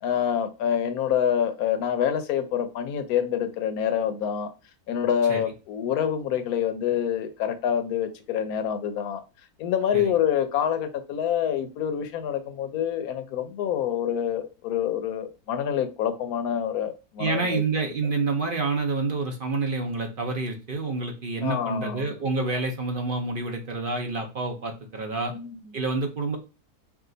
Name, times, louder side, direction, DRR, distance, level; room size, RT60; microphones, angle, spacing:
voice 1, 0.0-4.5 4.9-9.2 9.6-17.6 21.4-22.1 25.3-25.6, left 9 dB, 75° left, 1.1 m, -26 dB
voice 2, 17.2-25.3 25.7-26.4, right 3 dB, 50° right, 0.7 m, -28 dB
4.8 x 2.4 x 3.9 m
omnidirectional pair, 1.6 m